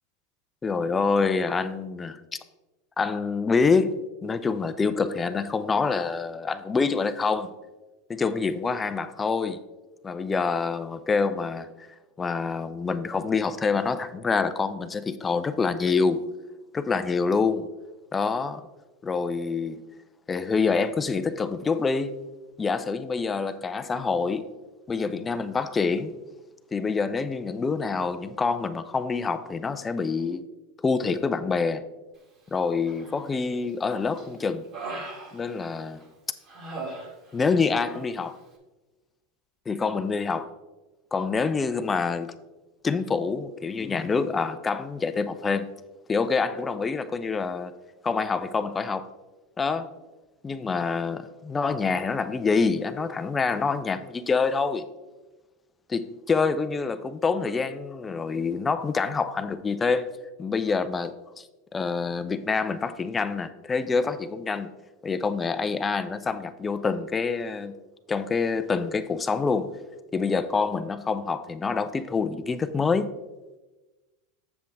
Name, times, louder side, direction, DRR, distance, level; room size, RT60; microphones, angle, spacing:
voice 1, 0.6-2.2 3.0-7.5 8.1-9.6 10.0-11.9 12.2-16.2 16.7-17.7 18.1-18.6 19.0-19.8 20.3-22.2 22.6-24.5 24.9-26.2 26.7-30.4 30.8-31.8 32.5-34.7 35.3-36.0 37.3-38.4 39.7-40.5 41.1-42.4 42.8-45.7 46.1-47.7 48.0-49.1 49.6-49.9 50.4-54.9 55.9-60.1 60.4-61.5 61.7-64.7 65.0-67.7 68.1-69.7 70.1-73.1, left 4 dB, 20° left, 0.5 m, -26 dB
Human voice, 32.9-33.5 33.9-36.0 36.5-37.5 37.8-38.1, right 3 dB, 45° right, 2.4 m, -39 dB
7.5 x 7.1 x 3.6 m
supercardioid pair, 110°, 0 cm